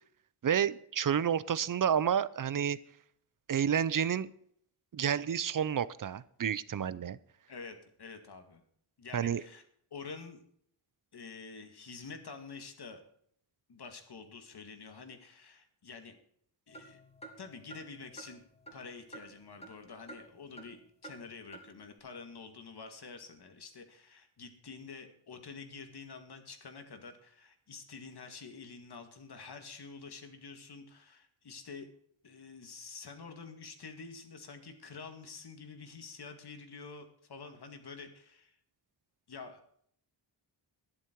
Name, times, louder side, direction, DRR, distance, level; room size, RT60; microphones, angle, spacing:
voice 1, 0.4-2.8 3.5-4.3 4.9-7.2 9.1-9.4, right 8 dB, 45° right, 18 dB, 0.6 m, -30 dB
voice 2, 7.5-8.6 9.0-9.6 9.9-10.4 11.1-13.0 13.7-16.2 16.7-17.0 17.4-18.4 18.7-31.9 32.2-38.6 39.3-39.6, left 4 dB, 55° left, 6 dB, 2.1 m, -48 dB
sound 1, 16.7-19.8 20.1-20.7 21.0-21.2 21.5-21.6, right 2 dB, 15° left, 2.8 m, -50 dB
11.5 x 11.0 x 4.6 m, 0.65 s
wide cardioid pair, 125°, 47 cm